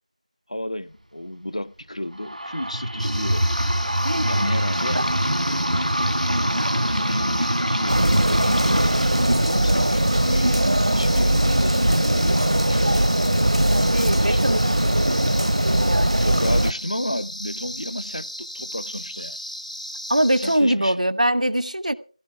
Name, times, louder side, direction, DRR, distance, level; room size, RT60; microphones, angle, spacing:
voice 1, 0.5-3.5 4.3-5.0 6.1-12.9 13.7-14.4 16.2-19.4 20.4-21.0, left 1 dB, 60° left, 0.7 m, -32 dB
sound 1, 2.2-11.6, equal, 85° right, 1.7 m, -24 dB
sound 2, 3.0-20.6, equal, 85° left, 3.8 m, -35 dB
sound 3, 7.9-16.7, right 1 dB, 55° right, 0.6 m, -20 dB
voice 2, 13.7-14.6 15.9-16.3 20.1-21.9, right 1 dB, 70° right, 0.9 m, -23 dB
19.5 x 16.0 x 3.4 m
figure-of-eight pair, 175°, 4 cm